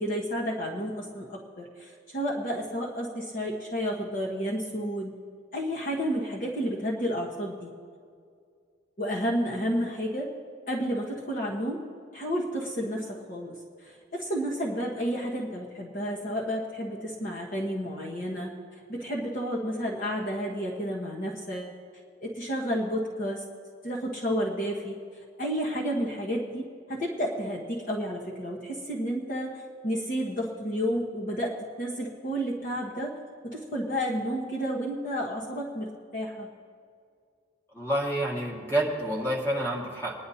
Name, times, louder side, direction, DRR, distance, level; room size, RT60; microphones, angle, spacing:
voice 1, 0.0-5.1 5.5-7.7 9.0-10.3 10.7-11.8 12.1-13.5 13.8-21.7 22.2-23.4 23.8-24.9 25.4-33.1 33.4-36.5, equal, 40° left, -4 dB, 1.2 m, -31 dB
voice 2, 37.7-40.1, right 1 dB, 10° left, -4 dB, 1.9 m, -28 dB
22.5 x 10.5 x 2.8 m, 2.2 s
head